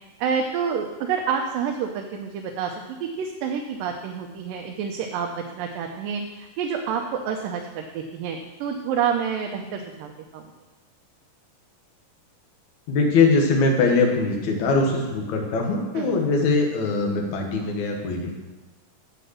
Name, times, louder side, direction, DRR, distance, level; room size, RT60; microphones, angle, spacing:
voice 1, 0.2-2.7 3.0-10.5 16.0-16.1, right 7 dB, 85° right, 2 dB, 2.4 m, -28 dB
voice 2, 12.9-18.4, left 3 dB, 60° left, 1 dB, 2.6 m, -22 dB
8.3 x 7.8 x 6.3 m, 1.2 s
omnidirectional pair, 3.9 m